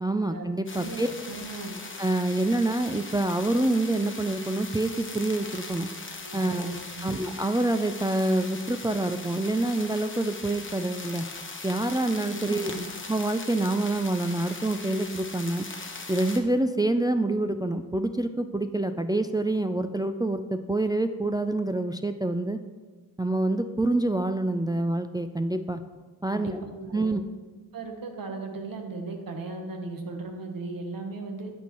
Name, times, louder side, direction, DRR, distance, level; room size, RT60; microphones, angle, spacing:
voice 1, 0.0-1.1 2.0-5.9 6.3-6.7 7.0-11.3 11.6-12.7 13.1-15.7 16.1-22.6 23.2-25.8 26.2-26.6 26.9-27.2, right 2 dB, 10° right, 8 dB, 0.3 m, -26 dB
sound 1, 0.7-16.4, left 3 dB, 35° left, 1.0 m, -40 dB
voice 2, 0.7-1.8 6.2-7.1 12.3-12.9 26.3-27.1 27.7-31.5, right 3 dB, 75° right, 4 dB, 1.1 m, -37 dB
12.0 x 4.4 x 3.0 m, 1.4 s
cardioid pair, 40°, 35 cm